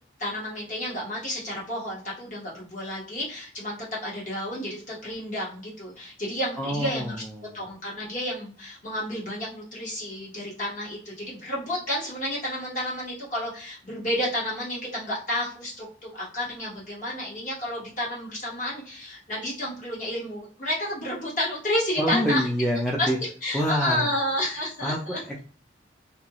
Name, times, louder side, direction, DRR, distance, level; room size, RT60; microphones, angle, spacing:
voice 1, 0.2-7.2 7.5-22.5 23.0-23.1 23.4-25.2, left 1 dB, 45° left, -5 dB, 1.3 m, -31 dB
voice 2, 6.6-7.6 22.0-23.2 23.5-24.1 24.8-25.4, equal, ahead, -3 dB, 0.4 m, -27 dB
2.5 x 2.3 x 2.9 m, 0.42 s
head